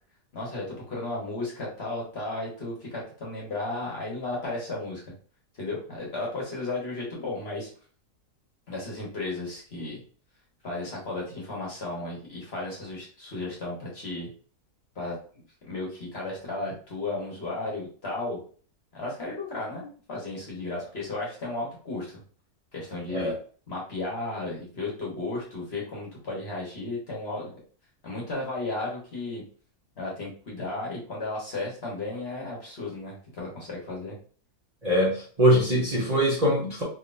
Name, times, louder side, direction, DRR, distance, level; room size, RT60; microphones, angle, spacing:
voice 1, 0.3-5.0 5.5-7.7 8.7-10.0 10.6-14.3 14.9-15.2 15.7-18.4 18.9-22.2 22.7-23.3 23.7-27.5 28.0-29.4 30.0-34.1, left 2 dB, 45° left, -3 dB, 1.2 m, -34 dB
voice 2, 34.8-36.8, equal, 30° right, -6 dB, 0.8 m, -22 dB
3.5 x 2.8 x 2.5 m, 0.43 s
omnidirectional pair, 1.7 m